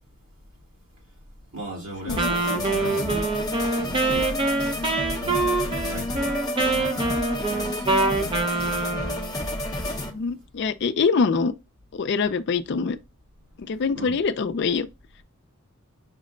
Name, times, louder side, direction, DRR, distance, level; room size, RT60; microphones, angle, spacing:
voice 1, 1.5-4.3 5.1-8.8 13.7-14.2, equal, 75° right, 1.9 m, -39 dB
sound 1, 2.1-10.1, left 1 dB, 20° left, 0.7 m, -30 dB
Wind instrument woodwind instrument, 2.2-9.3, right 3 dB, 25° right, 0.5 m, -25 dB
voice 2, 10.1-11.5 11.9-13.0 13.7-14.9, left 5 dB, 55° left, 0.4 m, -24 dB
5.1 x 2.1 x 3.7 m
head